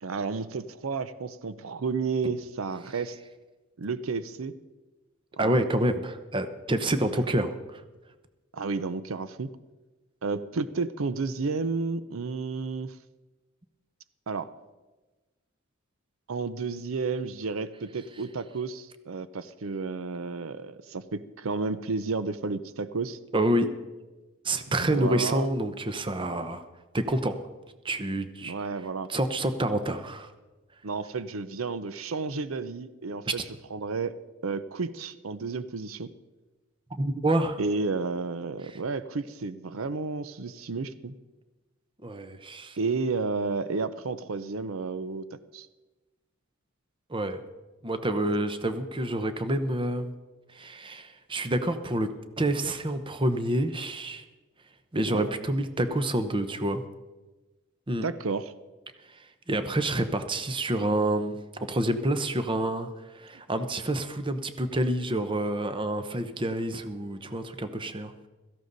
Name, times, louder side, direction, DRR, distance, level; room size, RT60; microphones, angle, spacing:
voice 1, 0.0-3.2 3.8-4.5 5.4-5.6 7.1-7.2 8.5-9.5 10.2-13.0 14.3-14.5 16.3-23.2 24.8-25.5 28.4-29.1 30.8-33.4 33.7-34.1 34.4-36.1 37.6-41.1 42.8-45.7 55.1-55.3 58.0-58.5, right 4 dB, 90° right, 14 dB, 0.6 m, -32 dB
voice 2, 5.4-7.8 23.3-23.7 24.4-26.6 26.9-27.4 27.8-28.5 29.1-30.3 33.2-33.3 37.0-37.6 42.0-42.8 47.1-47.4 47.8-50.1 50.5-52.1 52.4-54.2 54.9-56.8 57.9-58.1 59.5-61.4 61.7-62.9 63.1-68.1, right 1 dB, 25° right, 9 dB, 0.9 m, -28 dB
16.5 x 14.0 x 4.0 m, 1.2 s
head